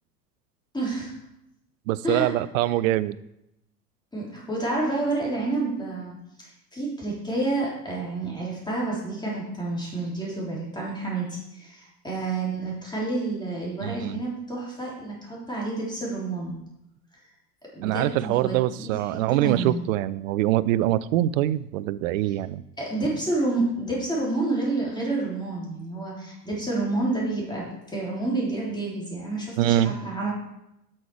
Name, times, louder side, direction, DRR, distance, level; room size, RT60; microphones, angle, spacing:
voice 1, 0.7-1.1 2.0-2.3 4.1-6.1 6.4-16.6 17.7-19.8 22.3-22.4 22.8-30.3, right 2 dB, 10° left, -5 dB, 3.4 m, -29 dB
voice 2, 1.9-3.2 13.8-14.2 17.8-22.6 29.6-30.0, right 14 dB, 55° right, 16 dB, 0.5 m, -24 dB
8.6 x 6.4 x 4.7 m, 0.85 s
figure-of-eight pair, 80°, 48 cm